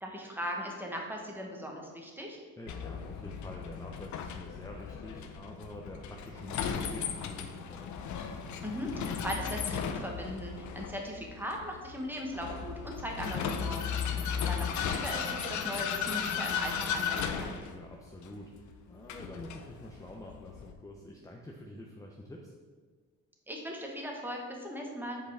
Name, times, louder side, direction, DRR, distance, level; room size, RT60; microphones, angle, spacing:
voice 1, 0.0-2.4 8.6-13.8 14.5-17.5 23.5-25.2, equal, 5° right, 0 dB, 1.2 m, -38 dB
voice 2, 2.6-8.1 13.9-14.3 17.6-22.5, left 1 dB, 10° left, 0 dB, 0.6 m, -47 dB
Vehicle, 2.7-20.7, left 7 dB, 70° left, 0.6 m, -36 dB
7.4 x 4.6 x 3.4 m, 1.5 s
cardioid pair, 90°, 30 cm